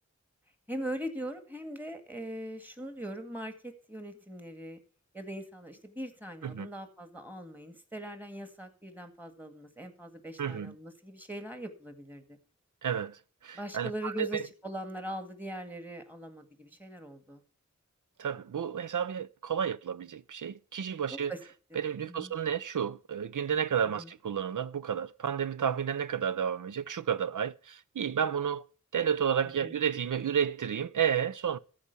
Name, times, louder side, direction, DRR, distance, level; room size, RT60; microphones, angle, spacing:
voice 1, 0.7-4.8 5.1-12.4 13.5-17.4 21.1-21.4 21.7-22.3 24.0-24.1 29.6-29.7, right 1 dB, 5° right, 2.0 m, -41 dB
voice 2, 10.4-10.7 12.8-14.4 18.2-21.3 21.7-28.6 28.9-31.6, right 8 dB, 80° right, 0.6 m, -31 dB
14.0 x 5.0 x 8.2 m
wide cardioid pair, 75°, 30 cm